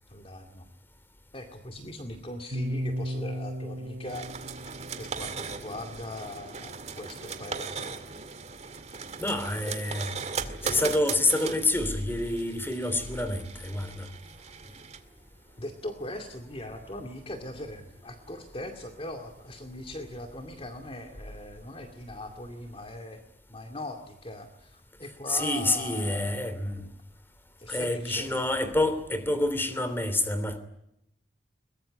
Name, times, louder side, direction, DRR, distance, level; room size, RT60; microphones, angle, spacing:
voice 1, 0.1-0.7 1.3-4.3 4.7-8.0 9.6-9.7 15.6-23.2 23.5-26.6 27.6-28.4, left 1 dB, 30° left, 2.3 m, -40 dB
sound 1, 2.5-6.6, equal, 70° right, 6.3 m, -36 dB
sound 2, 4.0-23.0, right 5 dB, 35° right, 2.1 m, -40 dB
voice 2, 9.2-10.1 10.4-14.1 14.6-14.7 25.3-26.9 27.7-30.6, left 1 dB, 10° left, 3.1 m, -28 dB
22.5 x 21.5 x 9.8 m
head